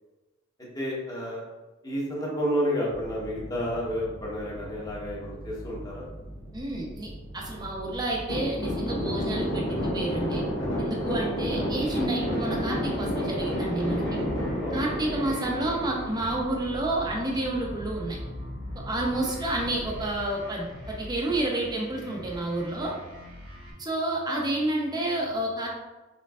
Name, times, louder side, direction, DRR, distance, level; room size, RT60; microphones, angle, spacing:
voice 1, 0.7-1.4 1.8-6.1 11.1-11.3 14.6-14.8 19.2-19.3, equal, 20° left, -4 dB, 1.0 m, -31 dB
sound 1, 2.9-20.2, equal, 80° right, 1.5 m, -43 dB
voice 2, 6.5-10.4 10.8-14.2 14.7-18.2 18.8-22.9 23.8-25.7, right 1 dB, 20° right, -2 dB, 0.8 m, -30 dB
sound 2, 8.3-16.6, equal, 85° left, 1.4 m, -30 dB
sound 3, 11.7-23.7, left 1 dB, 60° right, 1.5 m, -42 dB
4.5 x 3.8 x 2.4 m, 1.1 s
head